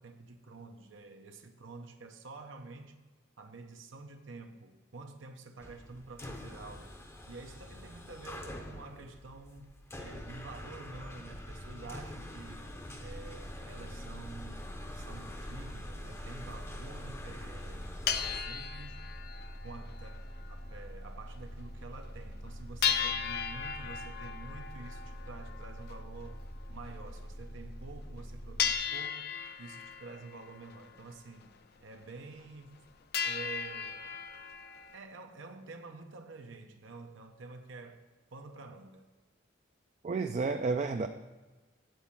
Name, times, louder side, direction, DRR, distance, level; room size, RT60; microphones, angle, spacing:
voice 1, 0.0-3.0 3.4-6.9 7.3-12.7 13.0-19.1 19.6-32.9 33.2-34.1 34.9-39.1, right 3 dB, 80° right, 0.7 m, -49 dB
sound 1, 5.6-18.4, left 1 dB, 15° left, 0.6 m, -46 dB
sound 2, 12.8-28.7, equal, 75° left, 2.1 m, -45 dB
sound 3, 15.5-15.6 16.2-16.3 16.4-16.6 17.3-17.4 17.7-20.8 21.1-21.2 21.6-21.7 22.0-22.1 22.8-27.3 28.0-28.2 28.6-31.6 31.9-32.0 32.4-32.9 33.1-35.0, left 7 dB, 55° left, 0.5 m, -37 dB
voice 2, 40.0-41.1, right 4 dB, 35° right, 0.3 m, -31 dB
9.3 x 4.2 x 7.1 m
head